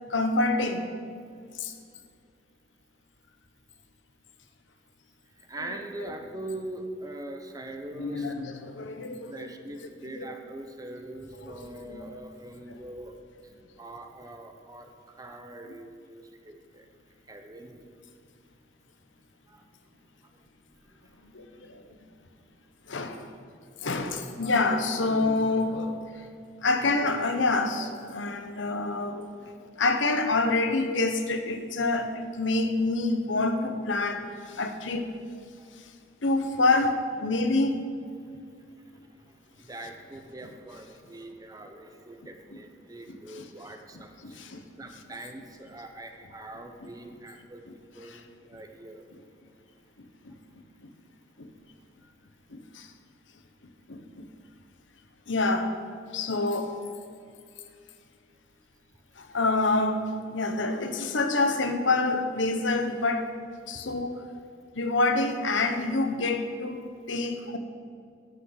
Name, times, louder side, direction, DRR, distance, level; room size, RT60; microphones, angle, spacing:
voice 1, 0.1-0.9 1.5-1.7 8.0-9.5 10.0-10.3 11.5-12.2 12.7-12.8 21.2-21.9 22.9-23.3 23.8-26.3 26.6-29.3 29.7-35.1 35.8-35.9 36.2-38.1 43.1-43.4 44.2-44.6 48.0-48.2 50.2-50.3 50.8-50.9 51.4-51.5 52.5-52.9 53.9-54.3 55.3-55.8 56.1-56.8 59.2-63.3 63.7-64.2 64.7-67.6, left 2 dB, 90° left, 7 dB, 1.0 m, -27 dB
voice 2, 5.3-8.3 9.3-13.1 13.4-16.9 17.2-17.9 19.5-19.7 20.2-21.3 21.7-22.1 22.6-23.0 35.6-35.7 38.8-47.6 47.9-49.1 63.7-63.8, right 1 dB, 20° right, 5 dB, 0.8 m, -43 dB
11.0 x 6.3 x 7.7 m, 2.3 s
head